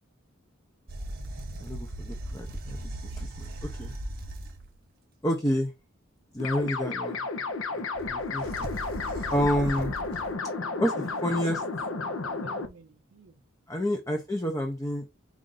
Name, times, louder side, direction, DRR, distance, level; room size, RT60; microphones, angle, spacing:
sound 1, 0.9-4.8 7.9-10.3, right 1 dB, 45° right, 0.9 m, -38 dB
voice 1, 1.6-2.8 3.2-3.9 5.2-5.7 6.3-7.2 7.7-8.5 9.3-9.9 10.8-11.6 13.7-15.1, equal, 15° left, 0.6 m, -29 dB
voice 2, 2.7-4.0 10.7-11.5 12.4-13.3, right 4 dB, 65° right, 0.4 m, -52 dB
sound 2, 6.4-12.7, left 3 dB, 75° left, 0.8 m, -32 dB
4.8 x 2.6 x 3.8 m
head